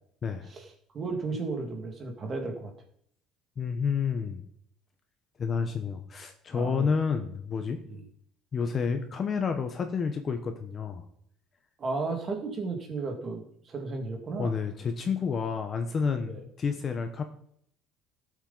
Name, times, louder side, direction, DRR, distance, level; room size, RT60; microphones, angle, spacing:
voice 1, 0.9-2.7 6.5-6.9 7.9-8.0 11.8-14.5 16.3-16.4, right 3 dB, 25° right, 3 dB, 2.0 m, -34 dB
voice 2, 3.6-4.4 5.4-7.8 8.5-11.0 14.4-17.2, left 5 dB, 25° left, 7 dB, 0.9 m, -30 dB
17.5 x 7.4 x 4.0 m, 0.67 s
cardioid pair, 180°, 0 cm